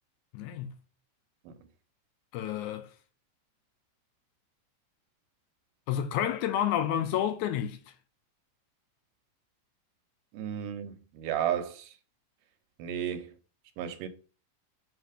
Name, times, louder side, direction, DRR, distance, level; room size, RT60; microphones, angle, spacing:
voice 1, 0.3-0.8 2.3-2.9 5.9-7.8, left 10 dB, 80° left, 1.9 m, -30 dB
voice 2, 10.3-11.9 12.8-13.3 13.8-14.1, right 10 dB, 85° right, 2.4 m, -33 dB
7.6 x 2.9 x 5.0 m
omnidirectional pair, 3.7 m